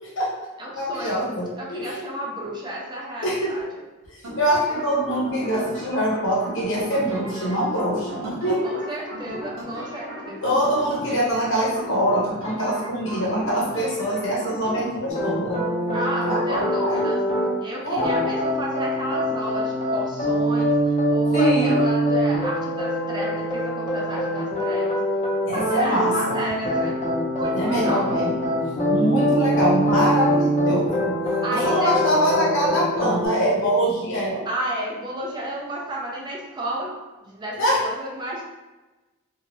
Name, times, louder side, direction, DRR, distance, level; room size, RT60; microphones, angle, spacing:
voice 1, 0.0-0.5 0.8-2.1 3.2-3.5 4.2-8.8 10.4-15.6 16.3-17.0 17.8-18.4 21.3-21.8 25.5-26.4 27.5-28.4 28.9-31.1 31.5-34.4 37.6-37.8, equal, 65° left, -4 dB, 0.9 m, -24 dB
voice 2, 0.6-1.3 1.6-3.8 8.6-10.4 15.9-17.2 17.6-25.0 25.5-27.0 27.3-28.1 31.4-31.9 34.5-37.0 37.2-38.4, right 1 dB, 20° right, -2 dB, 0.4 m, -32 dB
sound 1, 4.2-14.9, equal, 85° right, 0.8 m, -36 dB
sound 2, 15.1-17.5 18.0-33.3, equal, 30° left, 0.6 m, -23 dB
2.8 x 2.4 x 2.9 m, 1.1 s
head